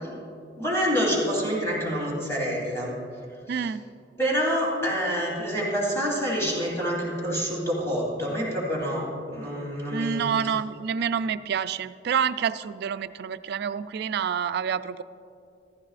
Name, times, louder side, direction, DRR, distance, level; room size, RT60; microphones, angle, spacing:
voice 1, 0.6-2.9 3.5-3.7 4.2-10.3, equal, 15° left, -4 dB, 3.1 m, -27 dB
voice 2, 3.5-3.8 9.9-15.0, right 7 dB, 60° right, 14 dB, 0.3 m, -28 dB
15.0 x 14.0 x 2.4 m, 2.5 s
head